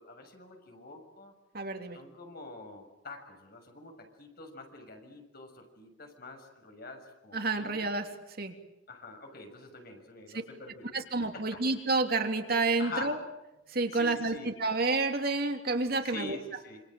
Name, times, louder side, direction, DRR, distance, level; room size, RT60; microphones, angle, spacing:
voice 1, 0.0-1.3 1.9-7.9 8.9-11.6 12.8-13.1 13.9-14.5 16.0-16.8, left 3 dB, 55° left, 4 dB, 6.6 m, -46 dB
voice 2, 1.5-2.0 7.3-8.1 8.4-8.5 10.9-13.2 13.7-16.4, right 3 dB, 55° right, 5 dB, 3.1 m, -29 dB
27.5 x 26.5 x 7.7 m, 0.91 s
head